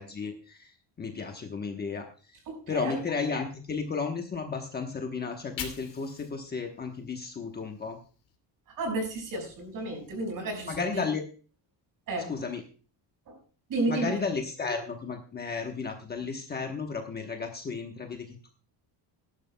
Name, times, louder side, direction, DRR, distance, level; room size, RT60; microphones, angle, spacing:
voice 1, 0.0-2.4 2.7-8.0 10.7-11.2 12.3-12.6 13.9-18.6, left 5 dB, 20° left, 3 dB, 1.0 m, -33 dB
voice 2, 2.5-3.0 8.7-11.1 12.1-12.4 13.3-13.4 13.7-14.2, right 2 dB, 45° right, 3 dB, 5.3 m, -32 dB
Fire, 5.2-8.4 8.7-10.8, left 7 dB, 50° left, 2.6 m, -47 dB
18.5 x 11.0 x 2.2 m, 0.37 s
cardioid pair, 180°, 44 cm